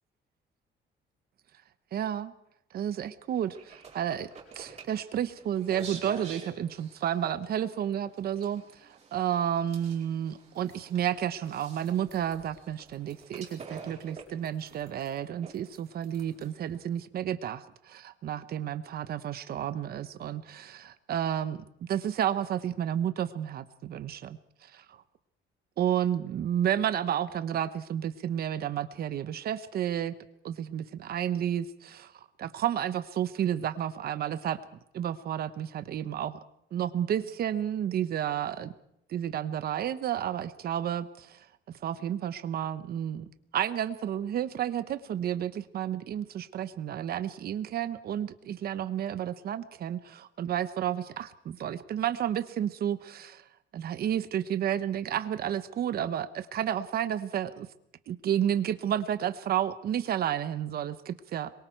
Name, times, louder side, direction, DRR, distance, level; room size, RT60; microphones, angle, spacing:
voice 1, 1.9-2.3 2.7-4.3 4.5-25.0 25.8-30.1 30.4-32.1 32.4-34.6 34.9-36.4 36.7-38.7 39.1-41.4 41.8-43.3 43.5-53.4 53.7-57.7 58.1-61.5, right 10 dB, 55° right, 13 dB, 1.0 m, -31 dB
sound 1, 3.3-16.8, right 5 dB, 35° right, 5.1 m, -49 dB
sound 2, 10.5-17.0, right 4 dB, 20° right, 6.8 m, -65 dB
25.5 x 22.5 x 4.6 m, 0.76 s
cardioid pair, 170°, 19 cm